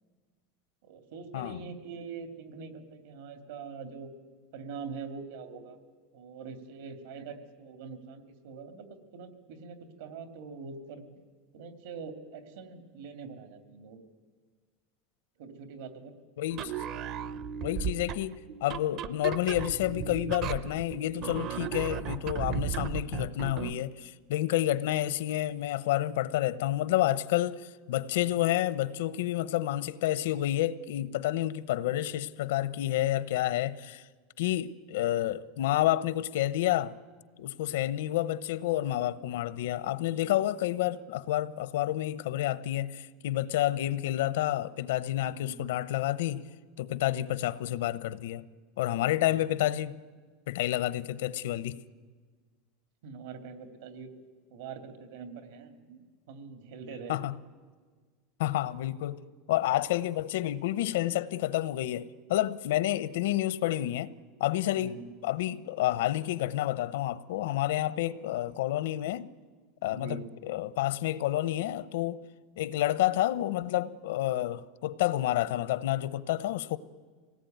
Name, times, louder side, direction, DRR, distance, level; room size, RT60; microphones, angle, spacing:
voice 1, 0.8-4.1 4.5-5.8 6.1-11.0 11.5-14.0 15.4-16.1 45.2-45.7 49.6-49.8 53.0-54.1 54.5-57.1 64.8-65.1 69.9-70.3, right 5 dB, 75° right, 2.8 m, -44 dB
voice 2, 16.4-16.7 17.6-34.0 34.4-36.9 37.4-46.4 46.8-48.4 48.8-49.9 50.5-51.8 57.1-57.3 58.4-59.2 59.5-64.1 64.4-65.0 65.2-69.3 69.8-72.2 72.6-76.8, left 14 dB, 85° left, 0.8 m, -29 dB
sound 1, 16.5-23.8, right 8 dB, 35° right, 0.6 m, -36 dB
25.5 x 19.0 x 9.4 m
supercardioid pair, 170°, 0 cm